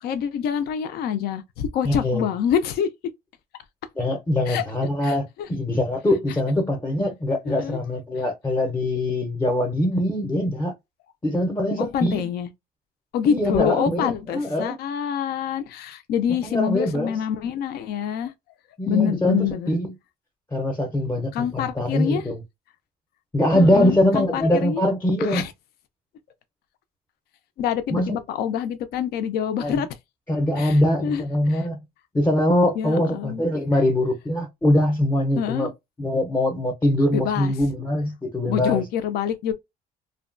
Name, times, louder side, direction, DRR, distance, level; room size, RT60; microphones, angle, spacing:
voice 1, 0.0-2.9 4.5-4.6 5.0-5.5 7.5-7.8 11.8-12.5 13.1-18.3 18.9-19.7 21.3-22.3 23.5-24.8 25.2-25.5 27.6-29.9 30.6-31.2 31.5-31.6 32.8-33.4 35.4-35.7 37.1-37.5 38.5-39.5, left 8 dB, 70° left, 0.5 m, -26 dB
voice 2, 1.8-2.3 4.0-10.7 11.2-12.3 13.2-14.8 16.4-17.1 18.8-19.9 20.5-22.4 23.3-25.4 27.9-28.2 29.6-29.8 30.3-31.8 32.1-35.7 36.0-38.8, left 1 dB, 15° left, 0.6 m, -23 dB
2.7 x 2.2 x 2.5 m
cardioid pair, 110°, 17 cm